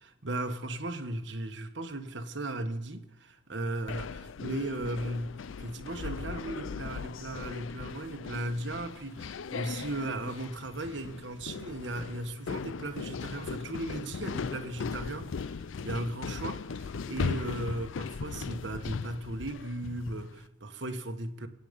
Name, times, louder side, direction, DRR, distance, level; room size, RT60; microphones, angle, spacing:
voice 1, 0.0-5.3 5.6-15.6 15.8-21.5, right 1 dB, 65° right, 1.5 m, -36 dB
sound 1, 3.9-20.4, left 5 dB, 80° left, 0.5 m, -38 dB
23.0 x 9.4 x 5.3 m
head